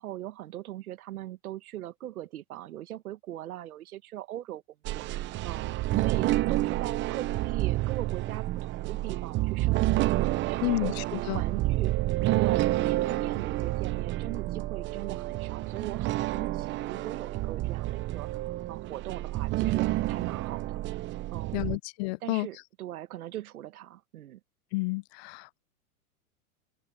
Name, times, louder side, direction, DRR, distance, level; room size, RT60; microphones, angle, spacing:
voice 1, 0.0-4.6 4.9-11.0 11.3-12.0 12.3-21.8 22.2-24.4, right 13 dB, 80° right, 1.5 m, -40 dB
sound 1, 4.8-21.8, right 17 dB, 25° right, 0.7 m, -29 dB
voice 2, 10.6-11.4 21.5-22.5 24.7-25.6, left 23 dB, 45° left, 0.7 m, -31 dB
open air
hypercardioid pair, 125°, 43 cm